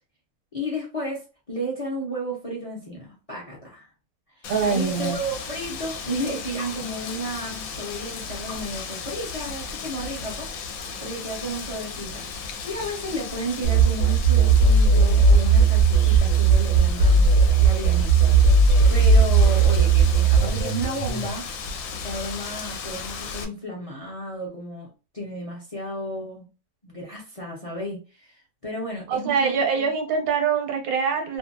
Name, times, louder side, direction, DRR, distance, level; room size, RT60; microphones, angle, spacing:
voice 1, 0.5-3.9 4.4-10.5 11.0-17.3 17.6-21.5 21.9-24.9 25.1-26.5 26.8-29.9, equal, 35° left, 0.5 m, -33 dB
Wind, 4.4-23.4, left 5 dB, 75° left, 1.0 m, -36 dB
voice 2, 4.5-5.2 29.1-31.4, right 5 dB, 80° right, 1.2 m, -24 dB
sound 1, 13.6-21.3, right 4 dB, 55° right, 0.6 m, -17 dB
2.6 x 2.4 x 2.5 m
omnidirectional pair, 1.6 m